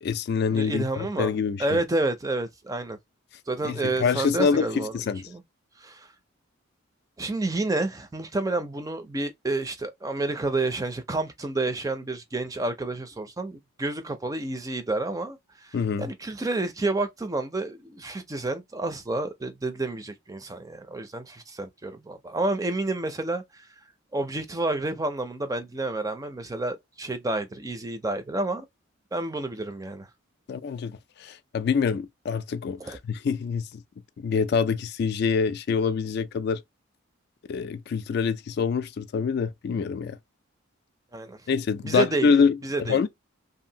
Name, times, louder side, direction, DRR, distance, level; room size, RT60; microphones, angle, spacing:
voice 1, 0.0-1.7 3.6-5.3 15.7-16.1 30.5-33.8 34.2-36.6 37.5-40.2 41.5-43.1, left 5 dB, 50° left, 0.3 m, -26 dB
voice 2, 0.5-1.3 1.6-3.0 3.5-5.0 5.3-5.4 5.8-6.1 7.2-23.7 24.1-28.6 29.1-30.1 32.8-33.0 41.1-41.4 41.8-42.3 42.6-43.0, right 2 dB, 15° right, 0.4 m, -29 dB
2.7 x 2.4 x 2.7 m
head